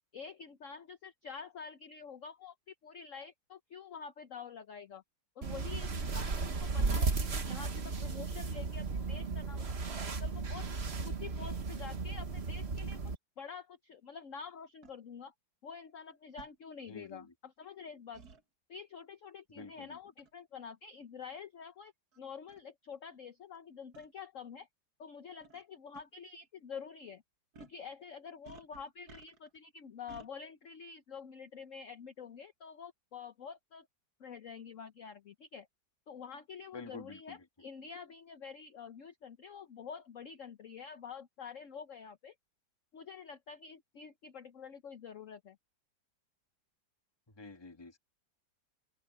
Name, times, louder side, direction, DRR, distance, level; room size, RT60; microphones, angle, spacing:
voice 1, 0.1-5.0 5.4-10.7 11.0-15.3 15.6-18.2 18.7-24.7 25.0-27.2 27.6-33.9 34.2-35.7 36.1-42.3 42.9-45.6, left 6 dB, 50° left, 1.1 m, -48 dB
sound 1, 5.4-13.2, right 4 dB, 35° right, 1.5 m, -35 dB
sound 2, 14.8-15.0 16.4-16.6 18.1-18.4 20.2-20.4 21.2-21.3 22.1-22.2 22.5-22.6 23.9-24.1 25.4-25.6 25.9-26.0 27.5-27.8 28.4-29.6 30.1-30.3, right 4 dB, 55° right, 2.0 m, -54 dB
voice 2, 16.9-17.3 19.5-20.0 36.7-37.4 47.4-48.0, left 3 dB, 15° left, 1.4 m, -48 dB
open air
omnidirectional pair, 2.0 m